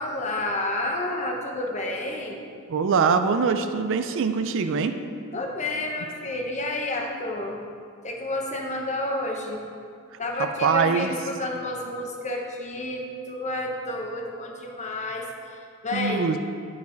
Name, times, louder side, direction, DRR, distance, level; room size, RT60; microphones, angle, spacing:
voice 1, 0.0-2.4 5.3-7.6 8.0-9.6 10.2-16.3, left 2 dB, 35° left, 1 dB, 0.9 m, -30 dB
voice 2, 2.7-5.0 10.6-11.1 15.9-16.4, right 5 dB, 60° right, 9 dB, 0.4 m, -23 dB
9.2 x 5.3 x 3.9 m, 2.4 s
head